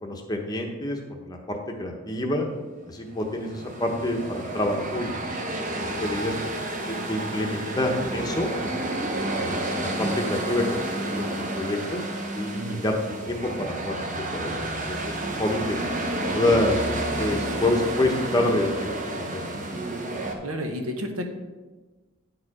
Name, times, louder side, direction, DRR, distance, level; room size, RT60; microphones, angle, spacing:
voice 1, 0.0-2.5 2.9-5.3 5.6-6.4 6.8-9.0 9.5-12.0 12.3-13.0 13.3-15.8 16.2-16.8 17.2-19.6, left 1 dB, 20° left, 2 dB, 0.8 m, -28 dB
sound 1, 3.1-20.4, right 1 dB, 35° right, 0.9 m, -30 dB
voice 2, 20.4-21.2, equal, 80° right, 4 dB, 1.1 m, -31 dB
9.6 x 4.8 x 4.8 m, 1.3 s
head